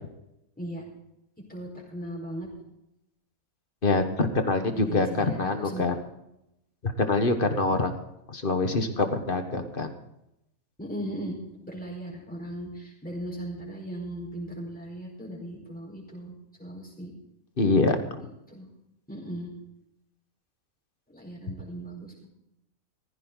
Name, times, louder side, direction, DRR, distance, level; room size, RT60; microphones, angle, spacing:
voice 1, 1.5-2.5 4.7-5.8 10.8-11.3 11.6-16.3 16.6-17.1 18.5-18.6 19.1-19.5 21.1-22.3, right 1 dB, 5° left, -3 dB, 4.6 m, -37 dB
voice 2, 3.8-6.0 6.8-7.9 8.3-9.9 17.6-18.3, left 3 dB, 40° left, 7 dB, 1.6 m, -25 dB
16.0 x 14.5 x 4.0 m, 0.83 s
omnidirectional pair, 1.5 m